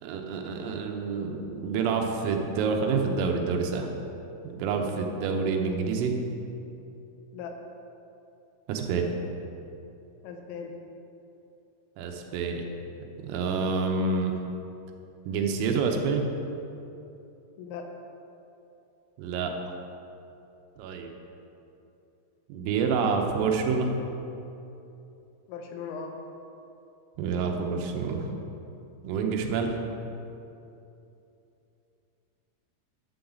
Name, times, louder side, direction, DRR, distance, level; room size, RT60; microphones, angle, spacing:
voice 1, 0.0-3.9 4.4-6.1 8.7-9.1 12.0-12.7 13.2-14.3 15.3-16.2 19.2-19.5 20.8-21.1 22.5-23.9 27.2-28.3 29.0-29.8, right 5 dB, 85° right, 2 dB, 3.5 m, -28 dB
voice 2, 10.2-10.7 17.6-17.9 25.5-26.2, left 6 dB, 90° left, 3 dB, 3.4 m, -38 dB
12.0 x 7.9 x 3.9 m, 2.8 s
omnidirectional pair, 5.9 m